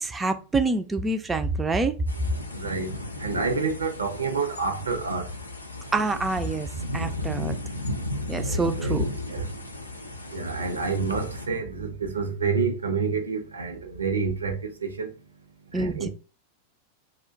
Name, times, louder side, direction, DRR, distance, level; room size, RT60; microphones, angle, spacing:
voice 1, 0.0-2.0 5.9-6.7 6.9-7.6 8.3-9.1 15.7-16.1, right 3 dB, 15° right, 0.3 m, -26 dB
sound 1, 2.1-11.5, left 2 dB, 80° left, 0.4 m, -34 dB
voice 2, 2.5-2.9 3.2-5.3 8.4-8.9 9.3-9.5 10.3-15.1 15.7-16.1, right 4 dB, 75° right, 0.6 m, -28 dB
2.4 x 2.1 x 3.7 m
figure-of-eight pair, 90°, 0 cm